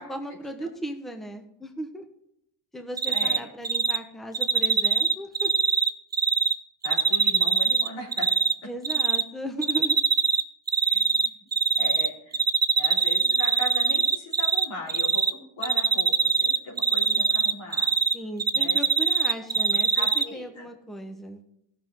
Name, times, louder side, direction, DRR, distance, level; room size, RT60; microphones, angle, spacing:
voice 1, 0.0-2.0 2.7-5.5 8.6-10.0 18.1-21.4, right 1 dB, ahead, 5 dB, 1.1 m, -36 dB
Cricket, 3.0-3.4 3.6-4.0 4.3-6.5 6.8-8.5 8.8-9.2 9.6-10.4 10.7-12.1 12.3-14.6 14.9-15.3 15.6-18.1 18.4-20.2, right 5 dB, 20° right, 0.5 m, -22 dB
voice 2, 3.1-3.5 6.8-8.3 10.8-11.5 11.8-12.4 12.7-17.9 18.5-18.8 19.2-19.3 19.9-20.7, left 1 dB, 85° left, -2 dB, 3.4 m, -38 dB
16.0 x 6.5 x 3.9 m, 0.76 s
cardioid pair, 100°, 49 cm